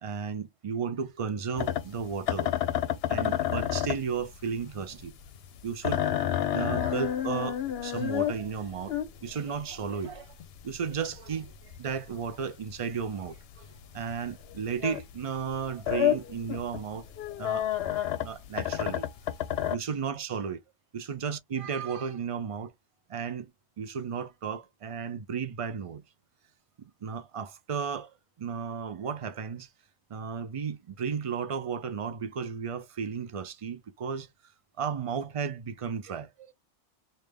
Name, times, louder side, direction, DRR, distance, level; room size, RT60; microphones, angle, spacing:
voice 1, 0.0-2.5 3.1-5.1 5.6-6.0 6.5-9.0 9.2-10.3 10.6-13.7 13.9-17.1 17.4-17.7 18.2-19.1 19.7-20.6 20.9-22.7 23.1-23.5 23.8-26.0 26.8-28.1 28.4-29.7 30.1-34.3 34.8-36.5, right 6 dB, 55° right, 0.3 m, -34 dB
sound 1, 1.6-15.2 15.5-19.8, left 11 dB, 65° left, 0.8 m, -30 dB
3.3 x 2.7 x 3.4 m
omnidirectional pair, 1.2 m